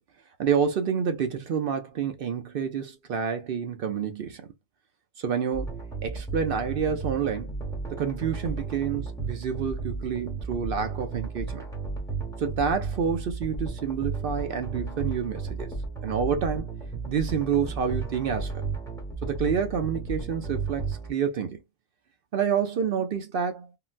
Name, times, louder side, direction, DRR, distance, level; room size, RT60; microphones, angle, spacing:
voice 1, 0.4-4.5 5.2-5.8 6.0-7.5 7.9-11.6 12.4-15.7 16.0-16.7 17.1-18.5 19.2-21.6 22.3-23.8, right 7 dB, 60° right, 0.6 m, -28 dB
sound 1, 5.5-21.1, right 4 dB, 5° left, 1.0 m, -34 dB
3.8 x 2.1 x 2.4 m
omnidirectional pair, 1.3 m